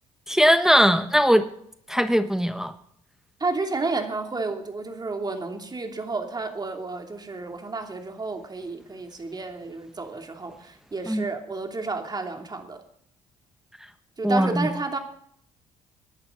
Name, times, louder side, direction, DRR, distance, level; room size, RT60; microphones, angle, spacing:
voice 1, 0.3-1.4 1.9-2.7 11.1-11.2 14.2-14.7, equal, 5° right, 10 dB, 1.1 m, -20 dB
voice 2, 3.4-12.8 14.2-15.0, right 3 dB, 25° right, 4 dB, 2.9 m, -31 dB
19.5 x 11.0 x 4.0 m, 0.68 s
hypercardioid pair, 55°, 15 cm